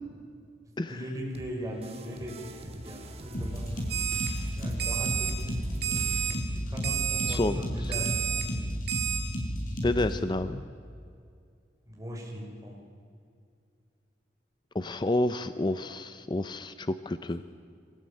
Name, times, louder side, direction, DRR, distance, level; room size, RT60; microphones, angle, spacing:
voice 1, 0.9-2.5 2.8-3.7 4.5-8.6 11.9-12.8, equal, 20° right, -2 dB, 5.8 m, -39 dB
sound 1, 1.3-6.4, right 1 dB, 35° right, 2.1 m, -44 dB
sound 2, 3.3-10.2, equal, 50° left, 5.7 m, -33 dB
Alarm, 3.9-4.3 4.8-5.3 5.8-6.3 6.8-7.3 7.9-8.4 8.9-9.2, right 11 dB, 65° right, 2.9 m, -30 dB
voice 2, 7.3-7.9 9.8-10.6 14.7-17.4, left 2 dB, 25° left, 11 dB, 0.6 m, -29 dB
24.0 x 18.5 x 8.9 m, 2.3 s
head